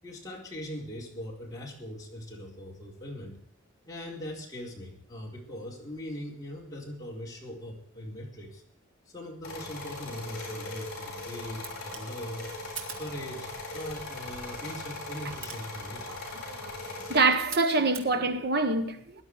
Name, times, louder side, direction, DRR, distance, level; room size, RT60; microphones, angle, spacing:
voice 1, 0.0-3.4 3.8-8.6 9.1-12.5 12.9-16.2, equal, 15° left, 4.2 m, -40 dB
sound 1, 9.4-17.2, left 2 dB, 50° left, 7.9 m, -39 dB
sound 2, 11.5-18.1, right 6 dB, 75° right, 2.5 m, -47 dB
voice 2, 16.5-19.2, right 3 dB, 50° right, 1.3 m, -26 dB
19.0 x 11.5 x 4.8 m
head